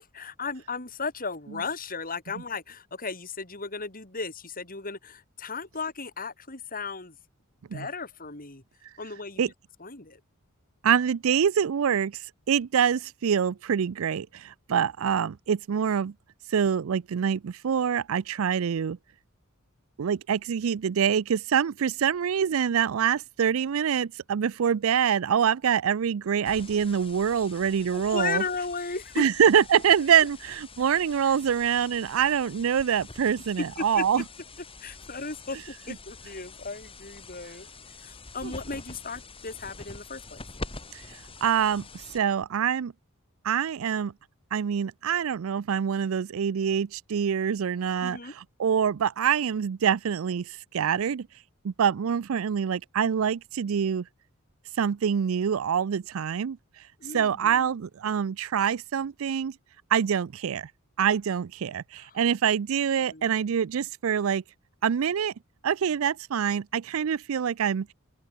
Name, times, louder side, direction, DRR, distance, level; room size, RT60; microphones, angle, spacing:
voice 1, 0.0-7.2 7.7-8.6 9.0-9.4 9.8-10.2 27.9-29.2 31.2-31.3 33.6-34.0 34.8-37.7 38.0-40.4 48.0-48.3 57.0-57.7 62.0-62.2 62.9-63.3, left 4 dB, 40° left, 4.7 m, -35 dB
voice 2, 10.8-12.2 12.5-16.1 16.5-19.0 20.0-28.4 29.2-34.2 38.4-38.5 40.9-41.0 41.4-41.9 42.1-42.9 43.4-44.1 44.5-51.3 51.6-54.1 54.8-56.6 57.1-59.5 59.9-60.7 61.0-64.4 64.8-65.3 65.6-67.9, right 8 dB, 70° right, 0.4 m, -25 dB
sound 1, 26.5-42.5, left 3 dB, 25° left, 3.8 m, -45 dB
open air
head